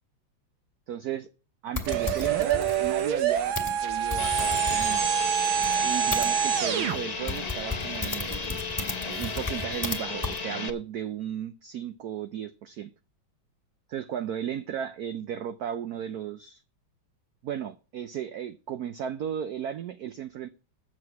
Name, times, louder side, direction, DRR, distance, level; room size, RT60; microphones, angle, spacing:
voice 1, 0.9-1.3 1.6-3.6 3.8-5.0 5.8-8.6 9.0-12.9 13.9-16.6 17.4-20.5, right 9 dB, 65° right, 1.0 m, -35 dB
sound 1, 1.8-6.3 6.9-7.0 7.3-10.0 10.2-10.4, left 3 dB, 10° left, 1.7 m, -35 dB
sound 2, 1.9-7.0, right 9 dB, 85° right, 1.8 m, -26 dB
sound 3, 4.2-10.7, left 4 dB, 75° left, 0.3 m, -34 dB
7.8 x 7.6 x 8.2 m
omnidirectional pair, 2.2 m